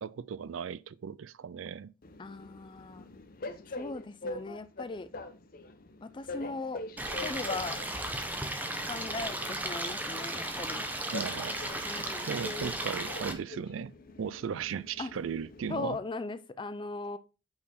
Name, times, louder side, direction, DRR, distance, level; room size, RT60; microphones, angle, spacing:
voice 1, 0.0-1.9 11.1-12.0 12.3-13.9 14.2-16.0, right 7 dB, 80° right, 0.4 m, -37 dB
Train, 2.0-16.0, left 2 dB, 45° left, 0.7 m, -45 dB
voice 2, 2.2-3.1 3.7-5.1 6.0-6.8 7.1-7.8 8.8-10.8 11.9-12.3 15.0-15.1 15.7-17.2, left 3 dB, 25° left, 0.4 m, -38 dB
Stream, 7.0-13.3, right 1 dB, 10° right, 0.8 m, -35 dB
8.5 x 4.3 x 4.2 m
head